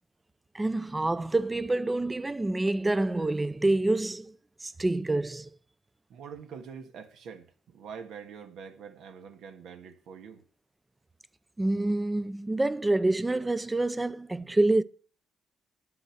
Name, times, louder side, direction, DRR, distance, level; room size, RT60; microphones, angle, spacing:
voice 1, 0.5-5.5 11.6-14.8, right 2 dB, 15° right, 0.6 m, -27 dB
voice 2, 6.1-10.4, right 6 dB, 80° right, 1.6 m, -45 dB
10.0 x 7.9 x 8.0 m
cardioid pair, 90°, 0 cm